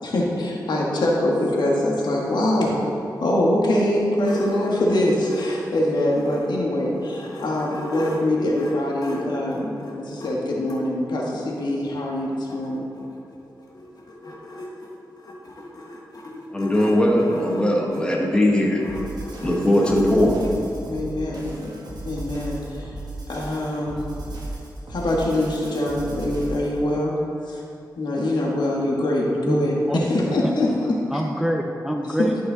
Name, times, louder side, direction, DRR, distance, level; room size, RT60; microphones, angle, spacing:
voice 1, 0.0-2.8 3.2-12.8 20.9-21.7 22.0-22.9 23.3-24.0 24.9-27.2 27.5-27.6 28.0-30.9, left 1 dB, 75° left, -3 dB, 1.5 m, -23 dB
sound 1, 4.2-6.6 7.0-10.8 11.6-11.7 12.0-12.1 12.2-20.5, left 1 dB, 55° left, 1.3 m, -37 dB
voice 2, 16.5-18.8 19.4-20.4 21.3-21.4, left 1 dB, 15° left, -3 dB, 1.4 m, -19 dB
sound 2, 18.8-26.8, right 2 dB, 65° right, 1.6 m, -35 dB
voice 3, 29.3-30.3 31.1-32.4, equal, 5° right, 2 dB, 0.5 m, -26 dB
11.5 x 5.6 x 3.9 m, 2.6 s
wide cardioid pair, 105°, 7 cm